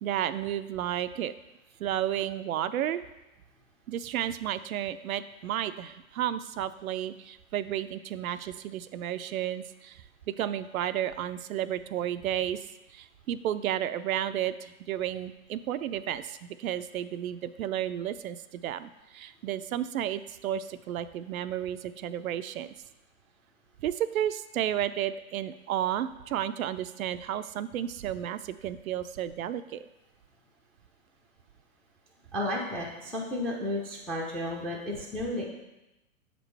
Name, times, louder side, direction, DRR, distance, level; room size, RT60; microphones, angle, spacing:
voice 1, 0.0-1.3 1.8-3.0 3.9-12.7 12.9-22.7 23.8-29.8, right 11 dB, 75° right, 12 dB, 0.5 m, -32 dB
voice 2, 32.3-35.4, left 1 dB, 5° left, -3 dB, 0.5 m, -32 dB
7.1 x 5.1 x 3.3 m, 0.97 s
hypercardioid pair, 120°, 42 cm